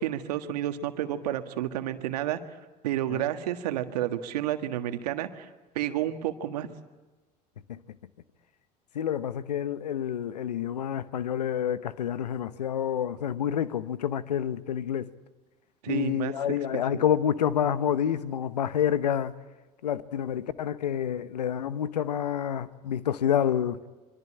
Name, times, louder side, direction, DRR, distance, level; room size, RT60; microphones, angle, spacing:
voice 1, 0.0-2.4 2.8-5.5 5.7-6.7 15.8-17.0, right 12 dB, 80° right, 1.7 m, -31 dB
voice 2, 8.9-15.1 15.9-19.3 19.8-23.8, left 9 dB, 90° left, 1.0 m, -28 dB
25.0 x 23.5 x 8.7 m
hypercardioid pair, 75°, 20 cm